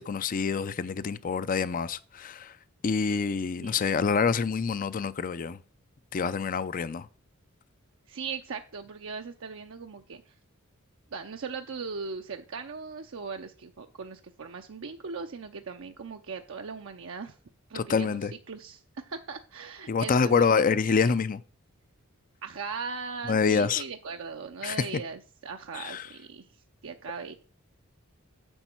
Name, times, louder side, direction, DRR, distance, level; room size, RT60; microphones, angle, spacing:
voice 1, 0.0-2.5 2.8-5.6 6.1-7.1 17.7-18.3 19.9-21.4 23.3-23.8 24.6-25.0 25.7-26.1, left 5 dB, 40° left, 0.4 m, -26 dB
voice 2, 8.1-10.2 11.1-17.4 17.7-20.7 22.4-26.5 26.8-27.4, right 5 dB, 65° right, 0.6 m, -39 dB
9.9 x 7.1 x 4.5 m
head